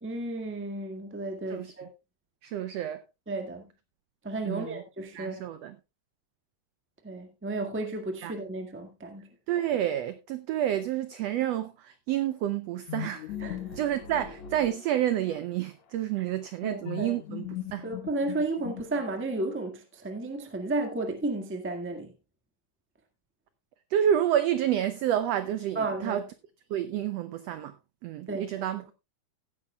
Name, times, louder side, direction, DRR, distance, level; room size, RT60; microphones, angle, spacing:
voice 1, 0.0-1.9 3.3-3.6 4.2-5.4 7.0-9.3 13.4-13.8 16.2-16.3 16.6-17.2 17.8-22.1 25.7-26.2 28.3-28.7, right 2 dB, 10° right, 0.5 m, -33 dB
voice 2, 2.4-3.0 4.4-4.8 5.1-5.7 8.2-8.3 9.5-13.5 13.7-17.5 17.7-17.8 23.9-26.2 26.7-27.7 28.0-28.8, right 11 dB, 85° right, 1.4 m, -29 dB
sound 1, 12.9-15.4 16.9-19.3, left 10 dB, 65° left, 2.4 m, -39 dB
16.5 x 9.5 x 2.3 m
omnidirectional pair, 3.7 m